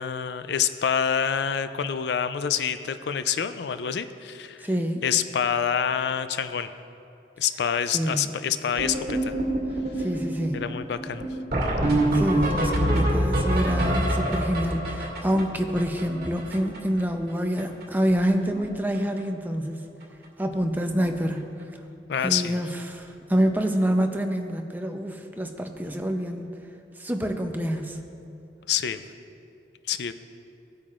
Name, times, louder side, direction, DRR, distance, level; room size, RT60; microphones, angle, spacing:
voice 1, 0.0-4.7 5.0-6.7 7.4-9.3 10.0-10.1 10.5-11.2 22.1-22.6 28.7-29.0 29.9-30.1, left 8 dB, 70° left, 11 dB, 0.4 m, -27 dB
voice 2, 4.6-5.0 7.9-8.4 10.0-10.6 11.9-19.9 20.4-21.5 22.2-26.5 27.0-28.0, equal, 10° right, 4 dB, 0.6 m, -27 dB
sound 1, 8.8-17.0 17.3-17.4 17.6-17.8 18.1-18.6 18.9-19.2 20.0-20.1 20.5-20.6 20.9-21.1 23.3-23.4 25.8-25.9, right 1 dB, 60° right, 2.2 m, -26 dB
18.0 x 8.7 x 2.4 m, 2.7 s
head